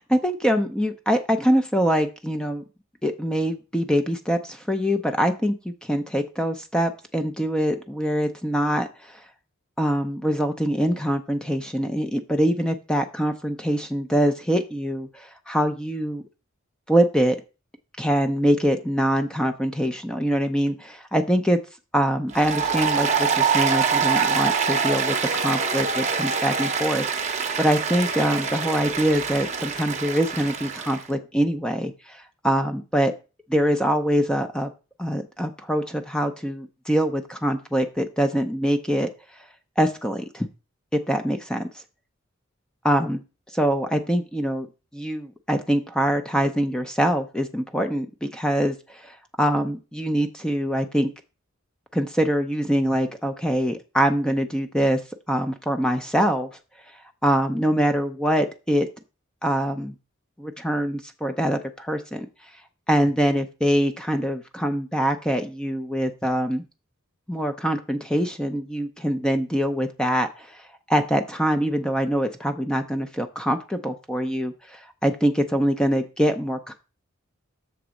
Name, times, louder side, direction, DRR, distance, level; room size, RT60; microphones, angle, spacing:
voice 1, 0.1-2.6 3.0-9.2 9.8-16.2 16.9-17.4 18.0-21.6 21.9-33.1 33.5-34.7 35.0-39.1 39.8-40.5 41.1-41.7 42.8-43.2 43.5-44.7 44.9-51.1 51.9-55.0 55.3-56.5 57.2-58.9 59.4-59.9 60.4-62.3 62.9-66.6 67.3-76.7, equal, 5° left, 6 dB, 0.5 m, -24 dB
Applause, 22.3-31.0, right 6 dB, 35° right, 0.8 m, -25 dB
7.0 x 4.0 x 6.3 m, 0.31 s
head